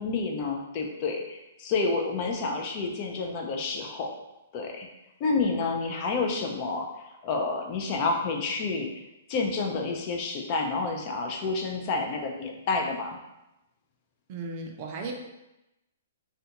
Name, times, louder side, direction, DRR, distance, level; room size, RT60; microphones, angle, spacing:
voice 1, 0.0-4.1 4.5-4.9 5.2-8.9 9.3-13.2, left 3 dB, 40° left, 2 dB, 0.4 m, -29 dB
voice 2, 14.3-15.1, right 3 dB, 45° right, 2 dB, 0.4 m, -35 dB
2.4 x 2.2 x 2.8 m, 0.93 s
hypercardioid pair, 140°, 0 cm